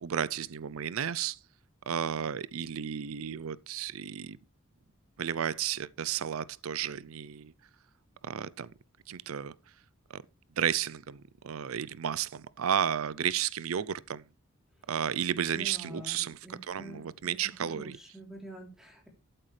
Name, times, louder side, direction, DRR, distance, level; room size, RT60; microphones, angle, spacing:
voice 1, 0.0-1.4 1.9-4.4 5.2-7.5 8.2-8.7 9.1-9.6 10.1-10.2 10.6-14.3 14.9-18.0, right 8 dB, 75° right, 0.5 m, -33 dB
voice 2, 15.5-19.1, right 1 dB, ahead, 3.4 m, -47 dB
11.5 x 8.9 x 3.3 m
head